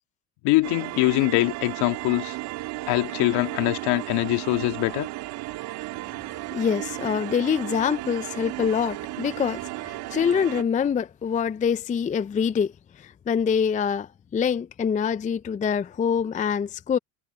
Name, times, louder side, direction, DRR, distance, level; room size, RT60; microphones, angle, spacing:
voice 1, 0.4-2.4 2.9-5.1, left 20 dB, 65° left, 2.5 m, -23 dB
sound 1, 0.6-10.6, right 19 dB, 60° right, 2.6 m, -34 dB
voice 2, 6.5-17.0, left 7 dB, 20° left, 0.5 m, -25 dB
supercardioid pair, 90°, 43 cm